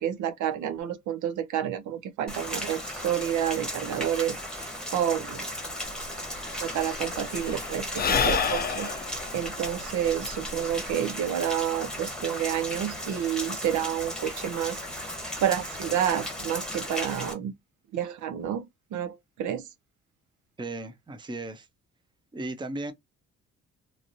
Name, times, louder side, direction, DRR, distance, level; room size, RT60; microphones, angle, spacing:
voice 1, 0.0-5.4 6.6-8.9 9.3-14.8 15.4-17.5 17.9-18.7 18.9-19.7, right 10 dB, 75° right, 0.6 m, -29 dB
Rain, 2.3-17.3, equal, ahead, 1.1 m, -36 dB
Sigh / Breathing, 5.9-6.0 6.2-10.9, left 6 dB, 30° left, 0.5 m, -29 dB
voice 2, 20.6-21.7 22.3-22.9, right 2 dB, 15° right, 0.6 m, -35 dB
3.0 x 2.6 x 2.5 m
cardioid pair, 90°, 30 cm